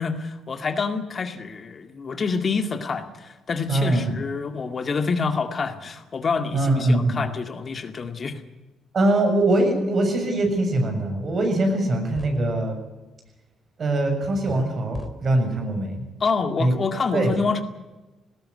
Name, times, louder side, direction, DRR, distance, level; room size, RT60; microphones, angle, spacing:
voice 1, 0.0-8.4 16.2-17.6, left 4 dB, 40° left, 7 dB, 2.1 m, -27 dB
voice 2, 3.7-4.1 6.5-7.2 8.9-12.8 13.8-16.0 16.6-16.7 17.1-17.3, right 1 dB, 45° right, 5 dB, 7.1 m, -22 dB
sound 1, 11.7-11.8 12.1-12.4 14.5-14.6 14.9-15.1, left 2 dB, 15° left, 3.4 m, -36 dB
19.0 x 17.5 x 9.8 m, 1.1 s
cardioid pair, 90°, 0 cm